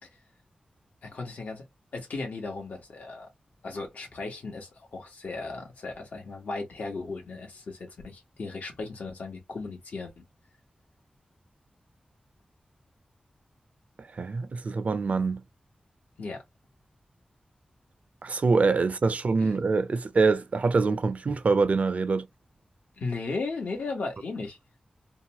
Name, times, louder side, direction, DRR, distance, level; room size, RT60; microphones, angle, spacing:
voice 1, 1.0-1.6 1.9-3.3 3.6-10.2 16.2-16.4 19.4-19.6 23.0-24.6, left 3 dB, 90° left, 1.0 m, -36 dB
voice 2, 14.2-15.4 18.2-22.3, right 4 dB, 65° right, 0.4 m, -24 dB
2.8 x 2.2 x 2.8 m
cardioid pair, 55°, 3 cm